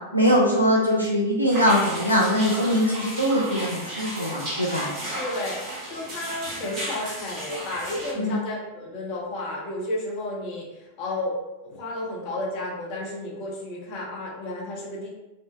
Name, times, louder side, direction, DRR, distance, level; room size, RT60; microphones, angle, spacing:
voice 1, 0.1-4.9 8.2-8.4, equal, 90° left, -3 dB, 0.3 m, -22 dB
sound 1, 1.5-8.1, right 1 dB, 35° right, 1.0 m, -34 dB
voice 2, 5.2-5.6 5.9-10.7 11.0-11.4 11.6-15.1, left 2 dB, 45° left, -2 dB, 0.7 m, -32 dB
2.5 x 2.0 x 2.8 m, 1.0 s
figure-of-eight pair, 90°, 0 cm